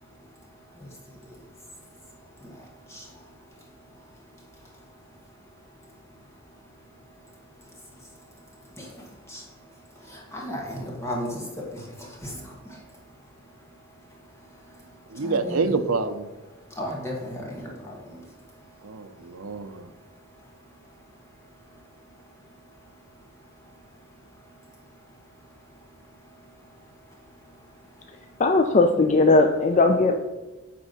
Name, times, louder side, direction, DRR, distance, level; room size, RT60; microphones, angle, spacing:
voice 1, 0.7-1.4 2.2-3.3 3.6-3.7 4.0-4.1 4.6-5.0 7.6-8.1 8.6-9.5 9.9-12.8 14.3-14.9 15.1-15.6 16.7-18.3 20.4-20.5 26.2-26.3 26.6-26.7 28.0-28.1, equal, 15° left, -2 dB, 1.7 m, -37 dB
voice 2, 15.1-16.3 18.8-19.9, right 4 dB, 75° right, 7 dB, 0.7 m, -27 dB
voice 3, 28.4-30.2, left 3 dB, 35° left, 5 dB, 0.4 m, -18 dB
9.5 x 3.6 x 6.5 m, 1.2 s
head